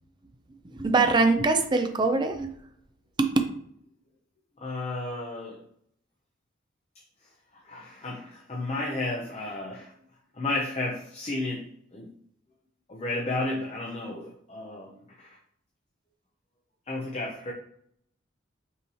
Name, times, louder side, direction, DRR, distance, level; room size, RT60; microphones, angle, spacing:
voice 1, 0.6-2.5 3.2-3.3, right 3 dB, 25° right, 6 dB, 0.4 m, -23 dB
voice 2, 4.6-5.6 7.5-9.9 10.3-12.1 12.9-15.4 16.9-17.5, left 2 dB, 35° left, -2 dB, 0.6 m, -33 dB
5.4 x 2.7 x 3.1 m, 0.68 s
head